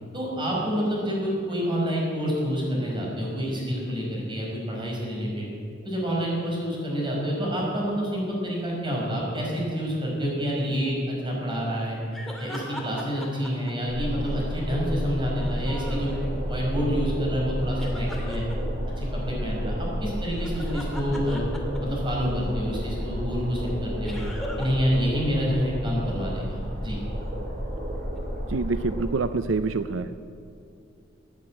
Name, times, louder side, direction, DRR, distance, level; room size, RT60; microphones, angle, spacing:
voice 1, 0.1-5.5 5.8-12.0 12.4-18.5 19.0-21.4 21.8-24.2 24.6-27.1, equal, 25° right, -3 dB, 5.2 m, -28 dB
sound 1, 12.1-14.5 15.2-16.6 17.8-18.5 20.2-22.2 24.0-24.9 25.1-25.2 28.1-28.2, left 1 dB, ahead, 2.2 m, -40 dB
sound 2, 13.9-29.0, equal, 50° right, 5.1 m, -31 dB
voice 2, 28.5-30.1, right 4 dB, 85° right, 11 dB, 0.5 m, -26 dB
15.5 x 9.4 x 8.8 m, 2.4 s
head